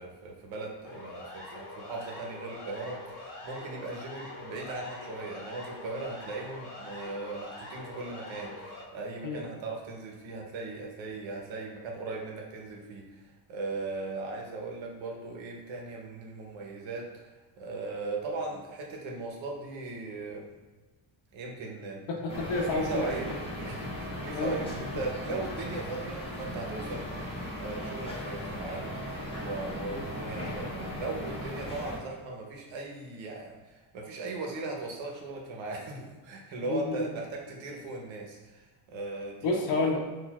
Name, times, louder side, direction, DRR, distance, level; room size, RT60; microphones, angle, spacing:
voice 1, 0.0-20.5 21.3-22.0 22.5-39.6, right 3 dB, 80° right, 0 dB, 1.0 m, -38 dB
Siren, 0.8-8.8, left 2 dB, 60° left, 1.2 m, -44 dB
voice 2, 22.1-23.2 24.3-24.7 29.9-30.0 36.7-37.1 39.4-40.0, left 3 dB, 85° left, 0 dB, 0.9 m, -30 dB
sound 1, 22.3-32.0, equal, 10° left, 0.8 m, -37 dB
6.0 x 2.6 x 2.4 m, 1.2 s
cardioid pair, 170°, 45 cm